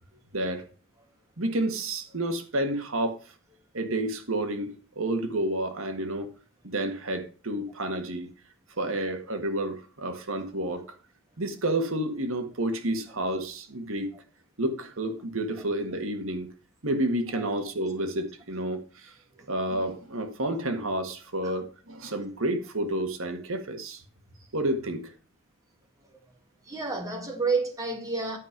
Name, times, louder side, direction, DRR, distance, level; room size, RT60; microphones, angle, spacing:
voice 1, 0.3-0.6 1.4-3.2 3.7-6.3 6.6-8.3 8.8-11.0 11.4-14.1 14.6-16.5 16.8-19.1 19.5-24.0 24.5-25.1, right 1 dB, 75° right, 1.7 m, -30 dB
voice 2, 26.7-28.4, right 4 dB, 15° right, 2.3 m, -29 dB
12.0 x 5.2 x 6.0 m
head